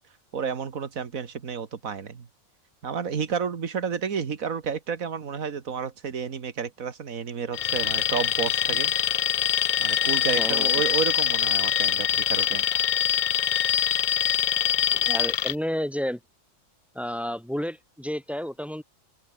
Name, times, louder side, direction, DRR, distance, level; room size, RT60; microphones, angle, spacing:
voice 1, 0.3-2.3 2.8-8.9 9.8-12.7, right 6 dB, 85° right, 2.1 m, -31 dB
Alarm, 7.5-15.5, left 10 dB, 60° left, 0.5 m, -24 dB
voice 2, 10.4-10.7 15.1-16.2 16.9-18.8, equal, ahead, 2.2 m, -30 dB
open air
omnidirectional pair, 1.4 m